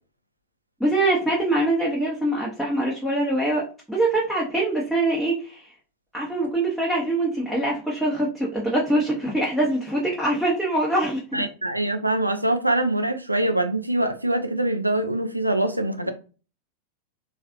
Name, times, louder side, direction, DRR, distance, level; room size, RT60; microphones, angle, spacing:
voice 1, 0.8-5.7 6.1-11.5, right 1 dB, ahead, 0.8 m, -24 dB
voice 2, 11.3-16.1, right 1 dB, 85° right, 0.4 m, -24 dB
3.2 x 2.4 x 2.4 m
figure-of-eight pair, 90°, 0 cm